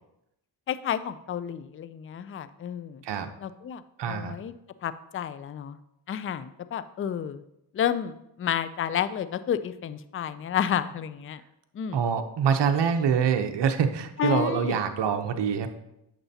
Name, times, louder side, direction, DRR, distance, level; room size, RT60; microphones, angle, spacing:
voice 1, 0.7-3.0 3.4-3.8 4.1-4.5 4.8-5.8 6.1-7.4 7.7-11.4 11.7-12.0 14.2-14.8, left 9 dB, 30° left, 14 dB, 0.4 m, -30 dB
voice 2, 4.0-4.4 11.9-15.7, right 7 dB, 55° right, 7 dB, 0.9 m, -25 dB
8.7 x 6.8 x 2.8 m, 0.85 s
cardioid pair, 70°, 49 cm